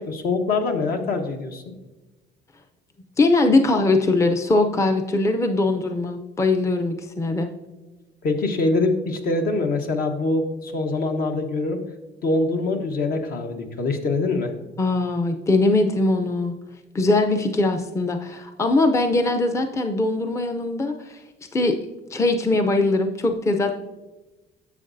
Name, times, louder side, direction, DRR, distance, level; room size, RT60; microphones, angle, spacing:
voice 1, 0.1-1.6 8.2-11.8 12.2-14.5, left 3 dB, 60° left, 4 dB, 1.2 m, -24 dB
voice 2, 3.2-7.5 14.8-16.6 16.9-21.2 21.5-21.8 22.1-23.7, left 2 dB, 15° left, 5 dB, 0.5 m, -21 dB
10.5 x 7.2 x 2.6 m, 1.1 s
cardioid pair, 110°, 17 cm